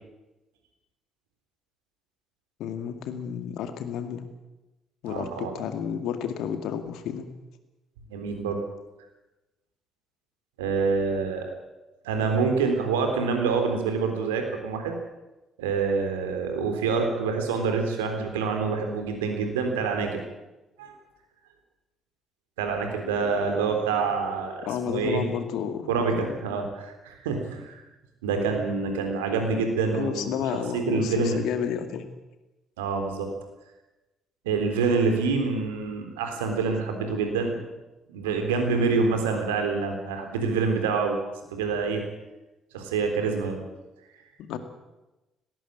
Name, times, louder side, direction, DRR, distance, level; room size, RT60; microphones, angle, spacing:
voice 1, 2.6-4.3 5.0-7.3 24.7-26.4 29.9-32.1 44.5-44.6, left 8 dB, 65° left, 8 dB, 2.2 m, -31 dB
voice 2, 5.1-5.5 8.1-8.6 10.6-11.5 12.0-14.9 15.6-20.2 20.8-20.9 22.6-25.2 25.9-27.8 28.2-30.2 30.5-31.4 32.8-33.3 34.4-37.6 38.1-41.2 41.5-42.0 42.7-43.6, right 4 dB, 80° right, 4 dB, 3.7 m, -26 dB
19.0 x 18.0 x 8.8 m, 1.0 s
figure-of-eight pair, 45°, 0 cm